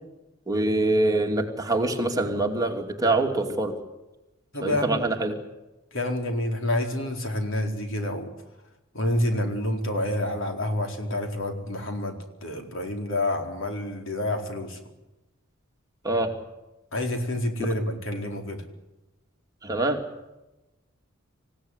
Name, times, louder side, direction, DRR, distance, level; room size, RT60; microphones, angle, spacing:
voice 1, 0.5-3.8 4.6-5.4 16.0-16.3 17.6-17.7 19.6-20.0, right 2 dB, 20° right, 2 dB, 2.7 m, -24 dB
voice 2, 4.5-5.0 5.9-8.3 8.9-14.8 16.9-18.6, left 1 dB, 65° left, 3 dB, 4.4 m, -28 dB
27.5 x 16.5 x 9.8 m, 1.0 s
head